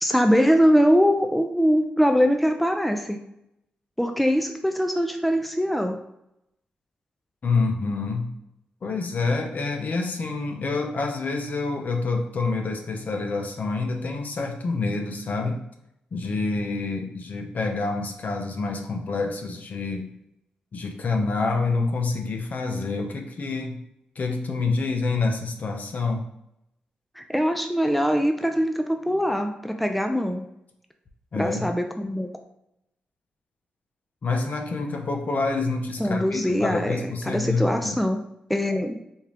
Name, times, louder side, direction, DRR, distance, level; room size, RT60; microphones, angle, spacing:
voice 1, 0.0-3.2 4.0-6.0 27.2-30.4 31.3-32.3 36.0-38.2 38.5-39.0, equal, ahead, 5 dB, 0.5 m, -22 dB
voice 2, 7.4-8.4 8.8-15.6 16.1-20.1 20.7-23.8 24.2-26.3 31.3-31.7 34.2-38.0, left 3 dB, 55° left, 4 dB, 0.7 m, -27 dB
4.3 x 2.3 x 3.4 m, 0.82 s
supercardioid pair, 55°, 3 cm